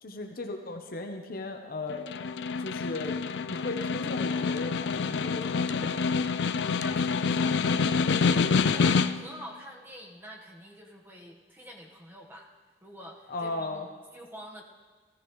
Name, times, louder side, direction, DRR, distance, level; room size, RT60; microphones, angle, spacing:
voice 1, 0.0-2.0 2.6-6.3 13.3-13.9, left 2 dB, 50° left, 5 dB, 0.9 m, -36 dB
Snare drum, 1.9-9.4, left 5 dB, 70° left, 0.4 m, -27 dB
voice 2, 6.8-12.5 12.8-13.9 14.1-14.6, equal, 10° right, -1 dB, 1.3 m, -46 dB
15.5 x 15.0 x 3.1 m, 1.4 s
head